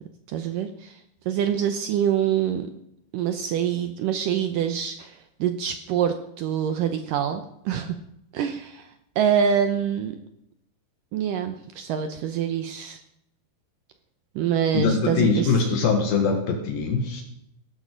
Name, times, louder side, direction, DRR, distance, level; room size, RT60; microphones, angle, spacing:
voice 1, 0.3-1.0 1.3-2.7 3.1-5.1 5.4-8.0 8.3-8.9 9.2-10.2 11.1-13.0 14.4-15.5, right 8 dB, 75° right, 8 dB, 2.0 m, -25 dB
voice 2, 14.7-17.2, left 4 dB, 70° left, 5 dB, 3.1 m, -22 dB
18.0 x 12.5 x 5.1 m, 0.79 s
omnidirectional pair, 4.7 m